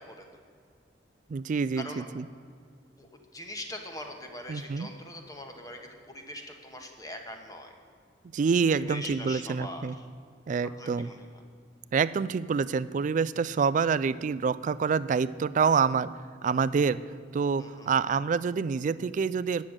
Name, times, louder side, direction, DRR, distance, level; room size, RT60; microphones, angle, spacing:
voice 1, 1.3-2.2 4.5-4.9 8.3-10.0 10.5-11.1 11.9-16.1 16.4-17.0 17.3-19.7, right 5 dB, 45° right, 16 dB, 0.3 m, -27 dB
voice 2, 3.0-7.7 8.9-9.9 10.8-11.3 17.6-18.0, left 1 dB, 20° left, 3 dB, 1.2 m, -42 dB
9.7 x 6.3 x 8.8 m, 2.1 s
head